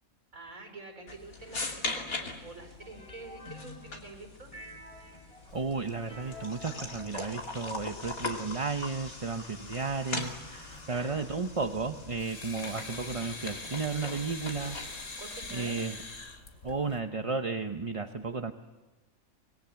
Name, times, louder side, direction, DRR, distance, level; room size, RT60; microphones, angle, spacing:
voice 1, 0.3-4.5 10.9-11.2 15.2-15.8, right 3 dB, 75° right, 4 dB, 5.4 m, -47 dB
sound 1, 1.1-15.1, left 2 dB, 85° left, 3.3 m, -41 dB
sound 2, 2.8-4.2 4.5-8.2, left 1 dB, 25° left, 4.4 m, -51 dB
sound 3, 5.5-17.0, left 3 dB, 65° left, 2.8 m, -46 dB
voice 2, 5.5-15.0 15.5-16.0 16.6-18.5, right 4 dB, 30° right, 6 dB, 0.8 m, -33 dB
26.0 x 21.5 x 7.1 m, 1.2 s
omnidirectional pair, 1.4 m